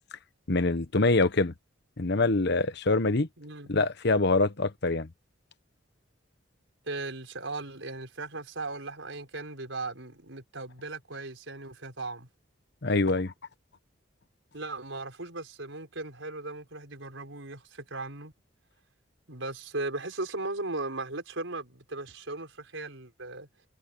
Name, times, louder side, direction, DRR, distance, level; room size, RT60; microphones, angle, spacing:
voice 1, 0.5-1.5 2.0-3.3 3.7-5.1 12.8-13.3, left 3 dB, 60° left, 1.2 m, -25 dB
voice 2, 3.4-3.7 6.9-12.3 14.5-18.3 19.3-23.5, right 2 dB, 90° right, 4.7 m, -37 dB
head